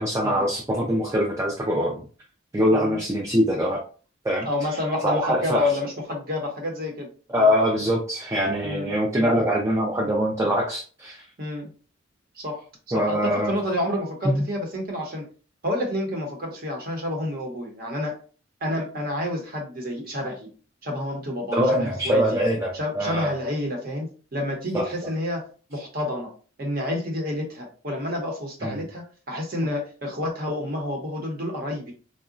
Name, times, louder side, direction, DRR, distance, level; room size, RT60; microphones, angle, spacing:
voice 1, 0.0-2.1 2.5-3.8 4.2-4.5 5.0-5.7 7.3-11.2 12.9-13.5 14.2-14.4 21.5-23.3 24.7-24.9 28.6-28.8, equal, 15° right, 0 dB, 0.3 m, -23 dB
voice 2, 4.4-7.1 7.3-7.5 8.6-9.4 11.4-11.7 12.4-15.2 15.6-18.2 18.6-20.5 20.8-22.2 22.7-25.4 25.7-26.3 26.6-31.9, left 1 dB, 45° right, 1 dB, 0.8 m, -29 dB
3.7 x 2.1 x 2.4 m, 0.39 s
head